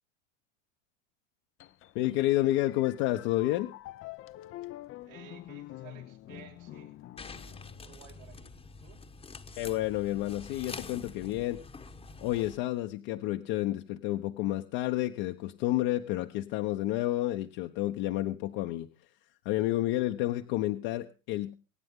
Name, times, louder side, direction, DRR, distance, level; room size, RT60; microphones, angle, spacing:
sound 1, 1.6-8.3, left 15 dB, 35° left, 0.6 m, -47 dB
voice 1, 1.9-3.7 9.6-11.6 12.2-18.9 19.4-21.5, left 15 dB, 55° left, 6 dB, 1.1 m, -30 dB
voice 2, 5.0-7.0 7.8-9.0, right 10 dB, 85° right, 0 dB, 6.5 m, -54 dB
sound 2, 7.2-12.6, left 4 dB, 15° left, 1.1 m, -46 dB
25.0 x 9.1 x 3.7 m, 0.32 s
supercardioid pair, 110°, 39 cm